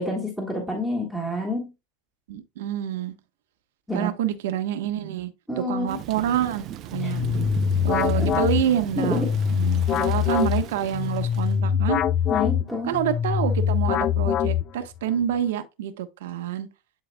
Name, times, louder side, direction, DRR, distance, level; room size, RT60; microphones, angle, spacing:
voice 1, 0.0-1.7 3.9-4.1 5.5-6.0 7.0-7.2 8.1-8.3 9.0-9.3 12.3-12.9, left 1 dB, 5° left, 1.6 m, -28 dB
voice 2, 2.3-3.1 3.9-5.3 5.7-7.2 7.8-9.2 9.5-12.0 12.8-16.7, right 10 dB, 85° right, 1.1 m, -27 dB
Thunder / Rain, 5.9-11.6, right 11 dB, 40° right, 0.5 m, -37 dB
sound 1, 6.9-15.0, left 9 dB, 30° left, 0.3 m, -23 dB
10.5 x 4.1 x 2.2 m
supercardioid pair, 145°, 0 cm